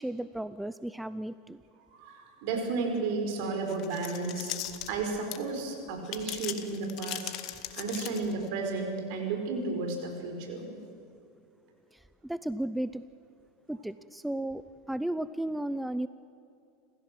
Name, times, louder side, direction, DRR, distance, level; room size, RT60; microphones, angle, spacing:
voice 1, 0.0-1.6 11.9-13.0 13.7-16.1, right 1 dB, 5° right, 14 dB, 0.6 m, -34 dB
voice 2, 1.9-4.5 4.9-7.3 7.7-10.8, right 3 dB, 65° right, 4 dB, 5.0 m, -33 dB
sound 1, 3.7-5.6 6.0-8.5, left 13 dB, 50° left, 1.7 m, -38 dB
28.5 x 15.5 x 7.7 m, 2.6 s
hypercardioid pair, 105°, 0 cm